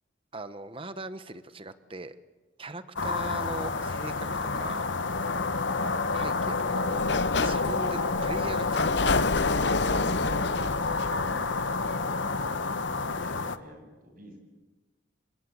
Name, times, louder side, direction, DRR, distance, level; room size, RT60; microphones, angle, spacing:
voice 1, 0.3-2.1 2.6-4.9 5.1-5.3 6.1-7.0 7.4-9.1, right 2 dB, 30° right, 11 dB, 1.0 m, -40 dB
sound 1, 3.0-13.6, left 3 dB, 80° left, 1.3 m, -29 dB
Sliding door, 6.9-12.6, left 3 dB, 65° left, 0.9 m, -30 dB
voice 2, 10.0-10.7 11.0-11.5 11.8-12.2 13.2-14.4, right 1 dB, 50° right, 4 dB, 7.7 m, -49 dB
28.0 x 25.0 x 8.1 m, 1.2 s
head